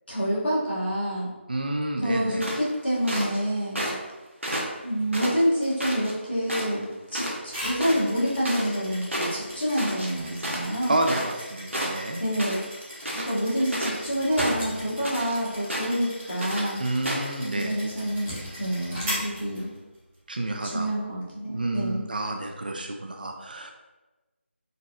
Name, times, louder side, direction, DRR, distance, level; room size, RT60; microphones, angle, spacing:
voice 1, 0.1-1.3 2.0-3.8 4.8-6.8 7.1-10.9 12.2-12.6 13.1-16.8 17.4-19.7 20.6-22.0, equal, 55° left, -7 dB, 1.4 m, -27 dB
voice 2, 1.5-2.4 10.9-12.2 16.8-17.8 20.3-20.9 21.5-23.7, right 2 dB, 45° right, 4 dB, 0.4 m, -29 dB
sound 1, 2.4-3.4 3.8-4.1 4.4-6.1 6.5-6.8 7.1-7.4 7.6-11.5 11.7-12.7 13.0-14.0 14.4-15.4 15.7-16.1 16.4-16.7 17.1-17.3, equal, 75° right, 0.8 m, -31 dB
sound 2, 7.5-20.1, equal, 10° right, 0.7 m, -39 dB
sound 3, 13.9-15.6 17.5-19.9, equal, 15° left, 1.1 m, -42 dB
3.9 x 2.2 x 2.6 m, 1.1 s
figure-of-eight pair, 160°, 7 cm